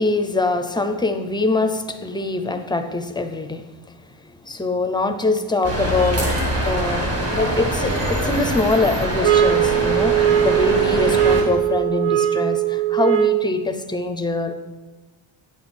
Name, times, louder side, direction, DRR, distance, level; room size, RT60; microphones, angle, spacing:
voice 1, 0.0-3.7 4.4-14.5, left 3 dB, 10° left, 8 dB, 0.4 m, -23 dB
sound 1, 5.6-11.4, right 1 dB, 30° right, 1.7 m, -24 dB
sound 2, 9.2-13.6, right 12 dB, 75° right, 0.6 m, -19 dB
9.1 x 7.9 x 4.2 m, 1.2 s
cardioid pair, 140°, 49 cm